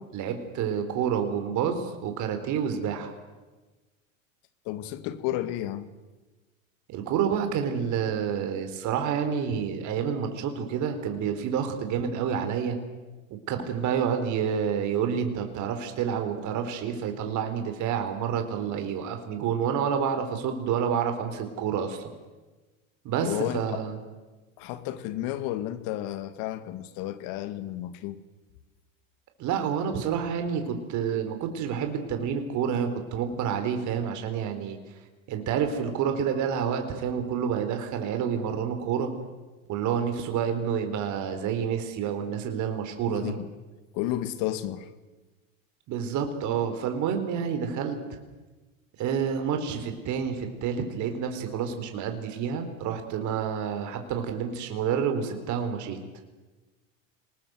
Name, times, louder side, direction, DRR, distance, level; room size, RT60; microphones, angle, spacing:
voice 1, 0.1-3.1 6.9-12.8 13.3-22.1 23.0-23.9 29.4-34.8 35.3-39.1 39.7-43.3 45.9-48.0 49.0-56.0, right 7 dB, 45° right, 4.0 m, -29 dB
voice 2, 4.7-5.9 23.2-23.8 24.6-28.2 43.1-43.5 43.9-44.9, left 13 dB, 55° left, 2.1 m, -32 dB
26.0 x 20.0 x 8.0 m
hypercardioid pair, 110°, 39 cm